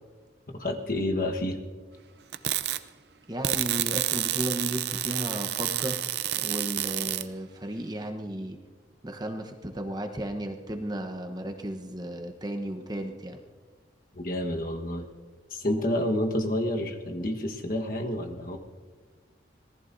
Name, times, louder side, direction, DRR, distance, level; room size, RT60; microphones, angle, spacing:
voice 1, 0.5-1.6 14.1-15.0 15.5-18.6, left 1 dB, 50° left, 3 dB, 1.3 m, -29 dB
sound 1, 2.3-2.8 3.4-7.3, right 12 dB, 60° right, 0.6 m, -29 dB
voice 2, 3.3-6.0 6.3-8.6 9.0-13.4, right 1 dB, 20° right, 5 dB, 1.0 m, -34 dB
25.5 x 19.0 x 2.7 m, 1.5 s
head